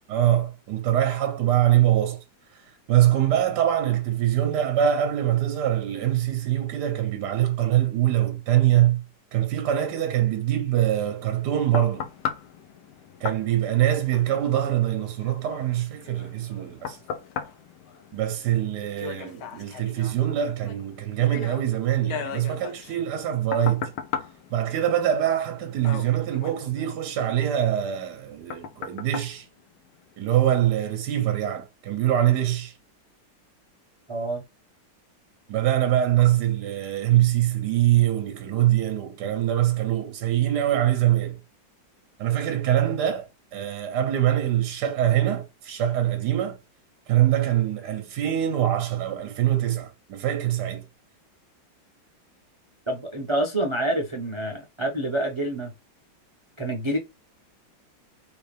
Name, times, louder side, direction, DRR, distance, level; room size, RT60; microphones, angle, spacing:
voice 1, 0.1-2.2 2.5-2.6 2.9-9.0 9.3-12.1 13.2-17.0 18.1-23.9 24.5-29.5 30.2-32.7 35.5-41.4 42.2-46.6 47.1-50.8, right 12 dB, 70° right, 1.1 m, -23 dB
sound 1, 11.1-30.3 30.8-31.0, left 8 dB, 70° left, 1.2 m, -38 dB
voice 2, 34.1-34.4 52.9-55.7 56.6-57.0, right 1 dB, 45° right, 0.3 m, -27 dB
3.4 x 3.4 x 3.2 m
omnidirectional pair, 2.1 m